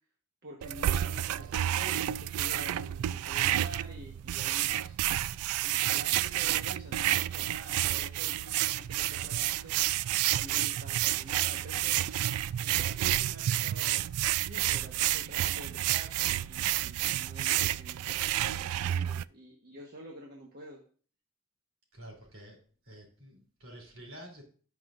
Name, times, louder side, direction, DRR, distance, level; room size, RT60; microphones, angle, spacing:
voice 1, 0.4-5.0 5.6-9.7 10.4-12.0 12.6-14.1 14.4-20.8, right 1 dB, 45° right, 0 dB, 1.3 m, -48 dB
sound 1, 0.6-19.2, right 13 dB, 85° right, 0.3 m, -30 dB
voice 2, 21.9-22.6 22.9-24.4, right 1 dB, 65° right, -1 dB, 3.5 m, -49 dB
17.5 x 6.1 x 2.6 m, 0.43 s
head